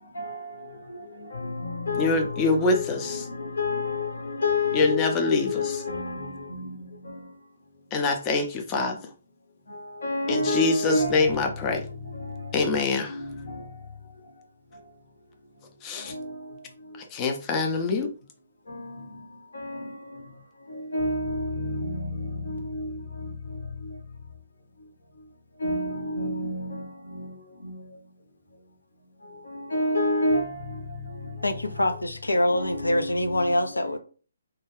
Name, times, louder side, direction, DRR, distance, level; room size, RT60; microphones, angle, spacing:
voice 1, 0.1-7.3 9.7-13.8 16.0-16.6 16.9-17.0 18.7-19.3 19.5-20.3 20.7-24.0 25.6-27.3 27.6-27.8 29.4-31.6 32.3-34.0, left 2 dB, 60° left, 0.8 m, -31 dB
voice 2, 2.0-3.2 4.7-5.6 7.9-9.0 10.3-11.8 12.5-13.1 15.8-16.1 17.1-18.1, left 3 dB, 20° left, 0.4 m, -24 dB
voice 3, 31.4-34.0, left 1 dB, 75° left, 0.4 m, -25 dB
2.2 x 2.2 x 3.2 m
figure-of-eight pair, 135°, 0 cm